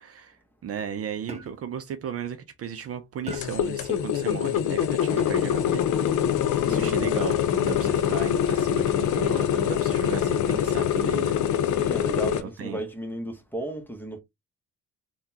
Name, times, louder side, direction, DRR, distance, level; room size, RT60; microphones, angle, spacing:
voice 1, 0.0-5.9 6.1-6.4 6.6-11.4 12.4-12.8, right 8 dB, 50° right, 0.5 m, -35 dB
sound 1, 1.3-1.8 3.3-3.8 5.2-5.7 7.7-8.2 9.2-9.7 11.1-11.5, right 3 dB, 20° right, 1.0 m, -42 dB
sound 2, 3.3-12.4, left 9 dB, 75° left, 0.6 m, -24 dB
voice 2, 6.6-7.1 11.6-14.2, right 1 dB, 5° left, 0.9 m, -34 dB
3.6 x 2.3 x 2.7 m
cardioid pair, 90°, 30 cm